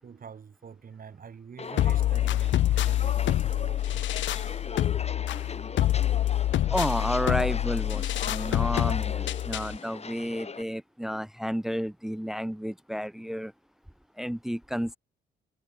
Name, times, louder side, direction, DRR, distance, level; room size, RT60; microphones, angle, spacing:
voice 1, 0.0-4.1, right 6 dB, 45° right, 7.1 m, -45 dB
Walk footsteps, 1.6-10.6, left 4 dB, 30° left, 4.3 m, -39 dB
sound 1, 1.8-9.8, left 13 dB, 70° left, 0.7 m, -26 dB
voice 2, 6.7-13.5 14.2-15.0, equal, ahead, 1.0 m, -31 dB
cardioid pair, 90°, 20 cm